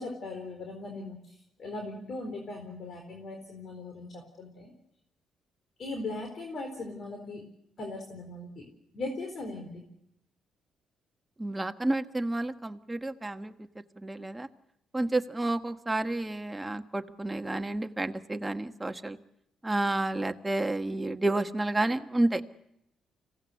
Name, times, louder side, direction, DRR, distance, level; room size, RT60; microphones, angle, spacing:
voice 1, 0.0-4.7 5.8-7.4 7.8-8.7 8.9-9.8, left 2 dB, 55° left, 3 dB, 4.1 m, -39 dB
voice 2, 11.4-13.5 14.0-14.5 14.9-19.2 19.6-22.4, right 2 dB, 15° right, 7 dB, 1.3 m, -30 dB
25.5 x 17.0 x 8.1 m, 0.78 s
cardioid pair, 90°, 0 cm